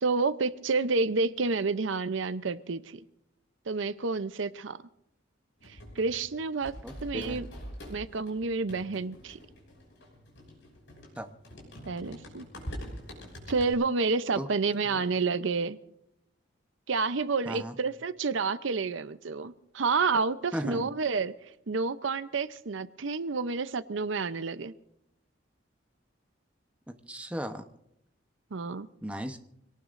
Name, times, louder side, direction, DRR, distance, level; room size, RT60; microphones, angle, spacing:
voice 1, 0.0-3.0 3.7-4.8 5.7-6.7 7.0-7.5 7.9-9.4 11.9-12.5 13.5-15.8 16.9-21.3 21.7-24.7 28.5-28.9, right 4 dB, 75° right, 14 dB, 0.7 m, -29 dB
sound 1, 5.6-13.7, equal, 65° left, 5.9 m, -45 dB
voice 2, 6.8-7.4 11.2-11.3 14.3-14.5 17.5-17.7 20.5-20.9 26.9-27.6 29.0-29.4, equal, 5° right, 6 dB, 0.9 m, -36 dB
26.0 x 18.5 x 2.6 m, 0.79 s
head